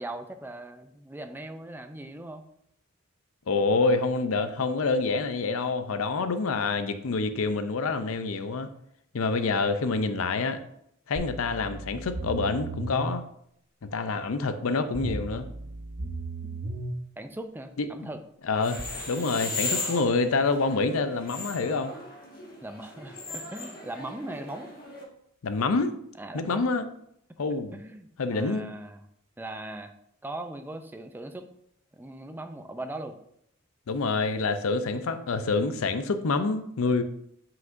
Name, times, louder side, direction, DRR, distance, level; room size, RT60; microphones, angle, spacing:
voice 1, 0.0-2.4 16.4-16.5 17.2-18.2 22.6-24.7 26.2-26.6 27.7-29.0 29.4-29.9 30.2-31.5 31.9-33.2, right 1 dB, 10° right, 7 dB, 0.5 m, -39 dB
voice 2, 3.5-8.7 9.1-10.6 11.1-13.2 13.8-15.5 17.8-17.9 18.4-21.9 25.4-26.0 26.3-26.9 27.4-27.7 28.2-28.7 33.9-37.0, left 3 dB, 70° left, 10 dB, 0.5 m, -27 dB
sound 1, 11.2-13.1 15.0-17.0 18.8-18.9, right 2 dB, 55° right, 0.8 m, -35 dB
sound 2, 18.5-25.0, left 3 dB, 45° left, 1.8 m, -37 dB
7.9 x 5.7 x 2.6 m, 0.71 s
head